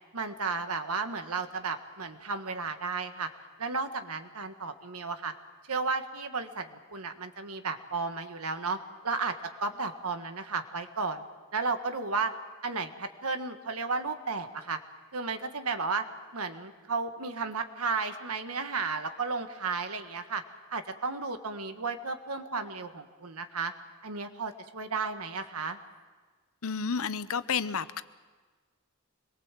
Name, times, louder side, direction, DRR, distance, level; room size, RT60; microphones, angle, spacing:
voice 1, 0.1-3.3 3.6-5.3 5.7-11.2 11.5-12.3 12.6-14.8 15.1-16.0 16.3-20.4 20.7-23.7 24.0-25.8, right 4 dB, 85° right, 8 dB, 1.6 m, -33 dB
voice 2, 26.6-28.0, left 6 dB, 70° left, 14 dB, 0.8 m, -31 dB
26.0 x 22.0 x 7.5 m, 1.4 s
head